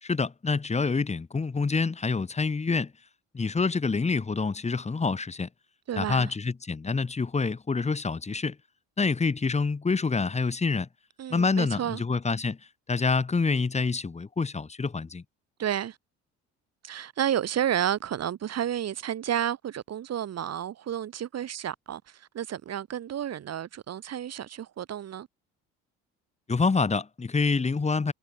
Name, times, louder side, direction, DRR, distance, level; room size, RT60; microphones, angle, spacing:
voice 1, 0.0-2.9 3.3-5.5 6.0-8.6 9.0-10.9 11.3-12.6 12.9-15.2 26.5-28.1, left 4 dB, 20° left, 1.9 m, -27 dB
voice 2, 5.9-6.3 11.2-12.0 15.6-16.0 16.8-25.3, right 10 dB, 55° right, 5.3 m, -31 dB
supercardioid pair, 80°, 31 cm